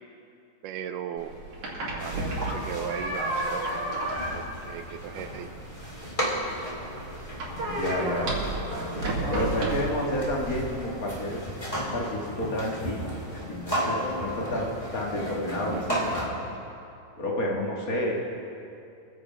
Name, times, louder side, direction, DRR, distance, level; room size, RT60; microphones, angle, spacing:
voice 1, 0.6-1.3 1.9-3.7 4.3-5.5, right 9 dB, 80° right, 8 dB, 2.0 m, -37 dB
sound 1, 1.2-10.7, right 2 dB, 60° right, 3.6 m, -33 dB
sound 2, 2.0-16.3, equal, 10° left, 1.9 m, -34 dB
voice 2, 7.3-8.3 8.9-11.4 11.7-13.0 13.5-16.3 17.2-18.1, left 1 dB, 35° left, -2 dB, 1.4 m, -30 dB
23.5 x 7.9 x 5.1 m, 2.6 s
omnidirectional pair, 4.0 m